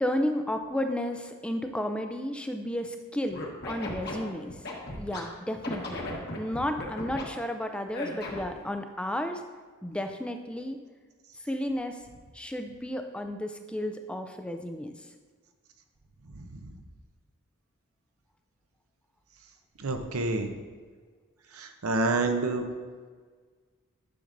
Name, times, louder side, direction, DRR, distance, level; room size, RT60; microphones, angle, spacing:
voice 1, 0.0-4.6 4.9-6.0 6.4-9.4 9.8-10.8 11.4-12.0 12.3-14.9, left 1 dB, 5° left, 6 dB, 0.4 m, -32 dB
Scratching (performance technique), 3.3-5.2 5.6-7.2 7.9-8.6, left 2 dB, 50° left, 1.2 m, -36 dB
voice 2, 19.8-20.5 21.6-22.6, right 2 dB, 90° right, 6 dB, 0.8 m, -27 dB
10.5 x 6.6 x 2.6 m, 1.5 s
head